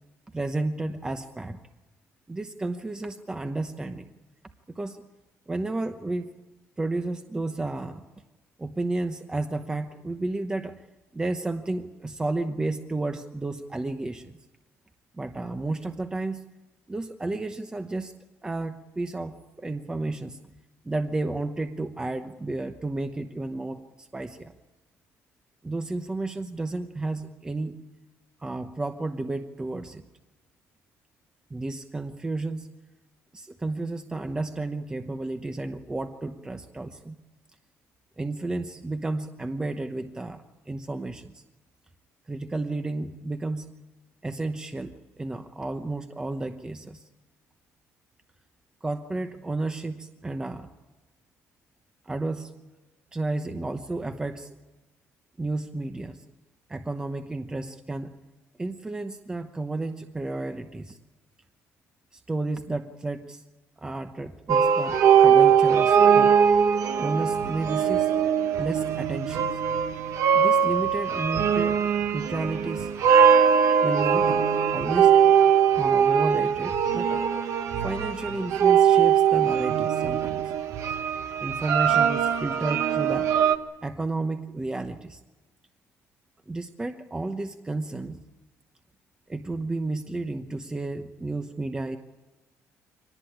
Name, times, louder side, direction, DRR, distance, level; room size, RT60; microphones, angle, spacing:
voice 1, 0.3-1.6 2.3-4.1 4.7-5.0 5.5-6.3 6.8-8.0 8.6-10.8 11.1-14.3 15.1-16.4 16.9-20.4 20.8-24.5 25.6-27.8 28.4-30.1 31.5-32.7 33.3-37.2 38.2-41.4 42.3-43.7 44.2-47.0 48.8-50.7 52.0-52.5 53.1-54.5 55.4-56.2 56.7-58.1 58.6-61.0 62.1-63.4 63.8-66.4 67.0-68.2 68.6-69.6 70.3-71.9 72.1-72.9 73.8-75.2 75.7-77.2 77.8-80.5 81.4-83.3 83.8-85.2 86.5-88.2 89.3-92.0, right 2 dB, 15° right, 7 dB, 0.9 m, -32 dB
sound 1, 64.5-83.6, right 8 dB, 70° right, 1.4 m, -21 dB
24.0 x 19.0 x 8.7 m, 1.2 s
cardioid pair, 130°, 5 cm